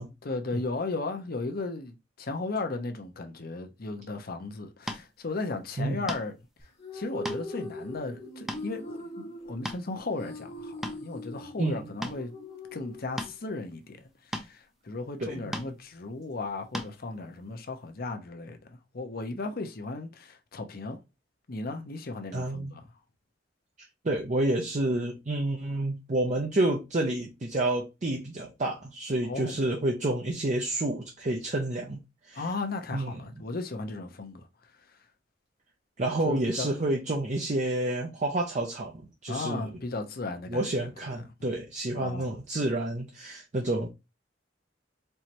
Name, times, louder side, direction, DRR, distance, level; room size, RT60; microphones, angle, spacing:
voice 1, 0.2-6.3 6.9-12.3 12.7-21.0 21.5-22.9 29.2-29.6 32.3-34.4 36.2-36.7 39.3-41.2 41.9-42.3, left 3 dB, 55° left, 0.8 m, -36 dB
sound 1, 4.9-5.0 6.1-6.4 7.0-7.4 7.9-8.0 8.5-8.7 9.4-10.0 10.5-11.0 12.0-12.2 13.2-13.4 14.3-14.5 15.5-15.7 16.7-16.9, equal, ahead, 0.5 m, -35 dB
sound 2, 6.6-13.6, left 1 dB, 35° left, 1.0 m, -41 dB
voice 2, 15.2-15.5 22.3-22.7 24.0-32.0 32.2-32.5 32.9-33.2 36.0-39.7 40.5-43.9, right 1 dB, 40° right, 0.6 m, -29 dB
4.5 x 3.2 x 2.9 m
head